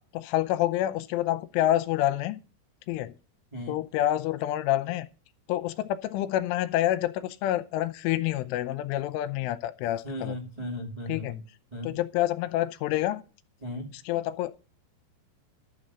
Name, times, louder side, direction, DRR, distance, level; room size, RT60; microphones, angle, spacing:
voice 1, 0.1-2.4 2.9-3.1 3.7-5.1 5.5-10.4 11.1-11.3 11.8-13.2 14.1-14.5, left 14 dB, 85° left, 3.2 m, -27 dB
voice 2, 10.0-11.4 11.7-11.9 13.6-13.9, left 2 dB, 50° right, 0.4 m, -36 dB
12.0 x 7.5 x 7.9 m
omnidirectional pair, 5.6 m